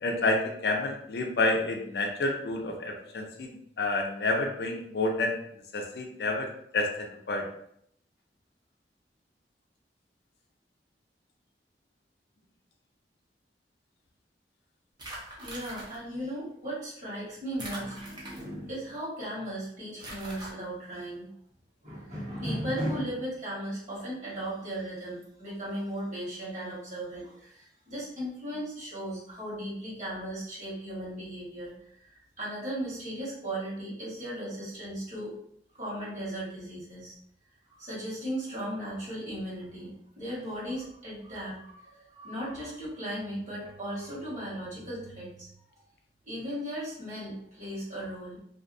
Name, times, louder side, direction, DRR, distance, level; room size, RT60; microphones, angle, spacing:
voice 1, 0.0-5.4 5.7-6.5 6.7-7.5, left 2 dB, 65° left, 2 dB, 0.4 m, -29 dB
sound 1, 15.0-16.0 17.6-18.7 20.0-20.5, right 1 dB, 25° right, 0.6 m, -42 dB
voice 2, 15.4-21.3 21.8-31.7 32.0-35.3 35.7-37.1 37.7-45.5 46.3-48.4, right 1 dB, 40° right, -8 dB, 1.4 m, -36 dB
2.6 x 2.2 x 2.5 m, 0.70 s
head